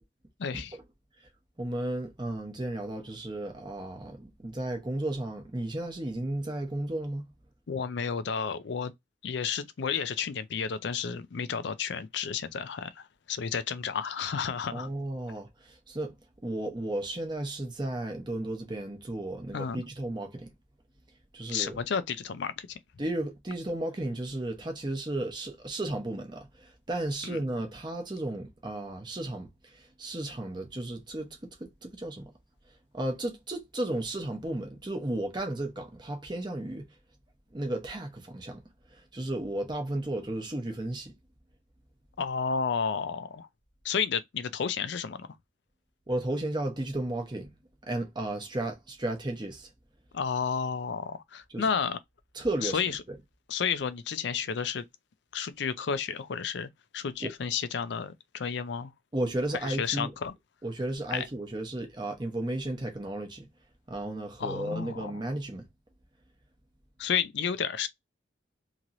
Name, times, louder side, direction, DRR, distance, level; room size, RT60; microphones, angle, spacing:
voice 1, 0.4-0.8 7.7-8.9 9.2-14.9 19.5-19.8 21.5-22.8 27.2-27.4 42.2-43.5 43.8-45.3 50.1-52.0 52.6-53.0 53.5-54.8 55.3-58.9 59.6-60.3 61.1-61.3 64.4-65.2 67.0-67.9, left 6 dB, 65° left, 0.4 m, -31 dB
voice 2, 1.6-7.3 14.7-15.5 15.9-16.1 16.4-20.5 21.3-21.8 23.0-29.5 30.0-32.3 32.9-36.9 37.5-38.6 39.1-41.1 46.1-47.5 47.9-49.7 51.5-51.7 52.4-52.8 57.2-57.3 59.1-60.1 60.6-63.5 63.9-65.6, right 1 dB, 25° right, 0.8 m, -34 dB
2.9 x 2.9 x 2.5 m
head